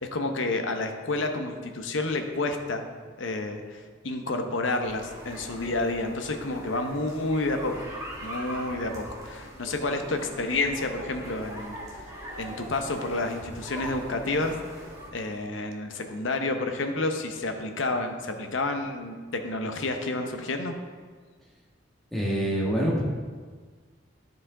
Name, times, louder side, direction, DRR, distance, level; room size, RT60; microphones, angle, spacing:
voice 1, 0.0-2.8 3.2-7.9 8.2-12.1 12.4-14.5 15.1-20.8, left 2 dB, 75° left, 5 dB, 0.8 m, -30 dB
sound 1, 4.8-15.1, equal, 15° right, 1.5 m, -41 dB
voice 2, 22.1-23.0, equal, ahead, -5 dB, 1.4 m, -25 dB
11.0 x 4.9 x 3.7 m, 1.5 s
head